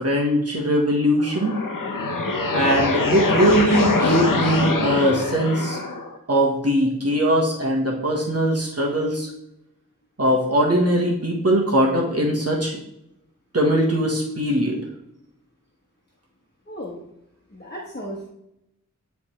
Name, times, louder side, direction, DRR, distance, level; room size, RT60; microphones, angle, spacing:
voice 1, 0.0-1.5 2.5-5.8 6.3-9.3 10.2-12.7 13.5-14.8, equal, 50° right, -2 dB, 1.4 m, -20 dB
sound 1, 1.2-6.2, left 3 dB, 90° left, 0.9 m, -23 dB
voice 2, 16.7-17.0 17.5-18.3, equal, 30° left, -4 dB, 1.3 m, -35 dB
10.5 x 3.5 x 3.3 m, 0.80 s
wide cardioid pair, 60°, 31 cm